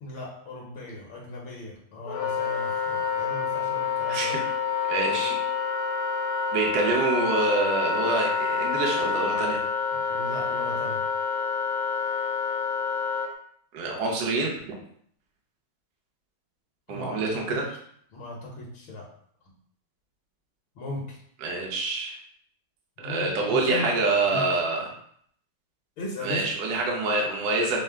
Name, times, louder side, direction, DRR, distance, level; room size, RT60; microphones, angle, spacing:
voice 1, 0.0-4.4 9.9-11.0 16.9-17.8 18.1-19.0 20.7-21.2 23.0-23.9 24.3-24.5 26.0-26.4, left 2 dB, 70° left, -3 dB, 1.6 m, -37 dB
Wind instrument woodwind instrument, 2.1-13.3, left 5 dB, 90° left, 1.5 m, -28 dB
voice 2, 4.9-5.4 6.5-9.6 13.7-14.7 16.9-17.6 21.4-22.1 23.0-24.8 26.2-27.8, right 3 dB, 60° right, -1 dB, 1.2 m, -26 dB
5.5 x 2.0 x 3.5 m, 0.64 s
omnidirectional pair, 2.3 m